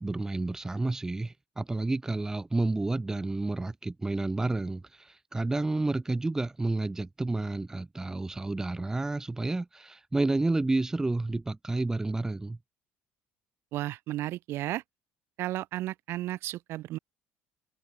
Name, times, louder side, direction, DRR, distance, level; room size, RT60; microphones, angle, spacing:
voice 1, 0.0-12.6, right 2 dB, 10° right, 3.0 m, -30 dB
voice 2, 13.7-14.8 15.4-17.0, right 15 dB, 65° right, 7.2 m, -33 dB
cardioid pair, 120°, 4 cm